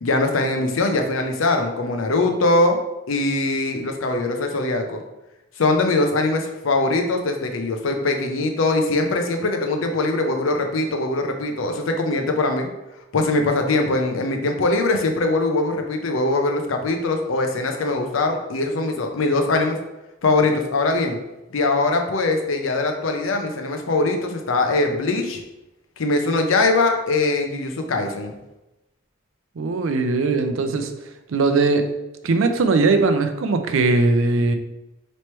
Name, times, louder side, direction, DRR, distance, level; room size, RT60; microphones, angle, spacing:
voice 1, 0.0-2.8 3.1-5.0 5.6-12.7 13.1-19.8 20.2-21.2 21.5-25.4 26.0-28.3, left 2 dB, 80° left, 4 dB, 0.6 m, -22 dB
voice 2, 29.6-30.9 31.3-31.9 32.2-34.6, right 3 dB, 80° right, 7 dB, 0.4 m, -19 dB
3.2 x 3.0 x 4.3 m, 0.96 s
head